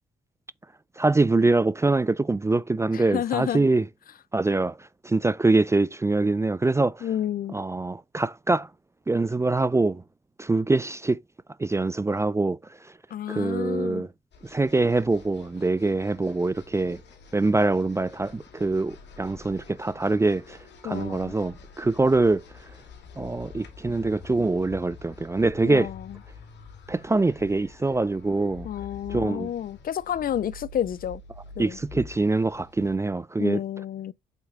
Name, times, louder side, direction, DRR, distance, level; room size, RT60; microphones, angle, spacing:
voice 1, 1.0-3.9 4.3-7.1 7.5-8.7 9.1-10.0 10.4-11.2 11.6-12.6 12.8-12.9 13.3-14.1 14.4-17.0 17.3-20.6 20.8-22.4 23.2-25.9 26.9-28.7 29.1-29.5 31.6-33.6, right 3 dB, 15° right, 0.4 m, -24 dB
voice 2, 2.9-3.7 7.0-7.6 13.1-14.1 20.8-21.3 25.6-26.2 28.6-31.2 31.6-31.8 33.4-34.1, left 10 dB, 45° left, 0.4 m, -30 dB
sound 1, 14.3-33.0, left 4 dB, 60° left, 2.4 m, -46 dB
8.0 x 4.2 x 3.6 m
cardioid pair, 90°, 20 cm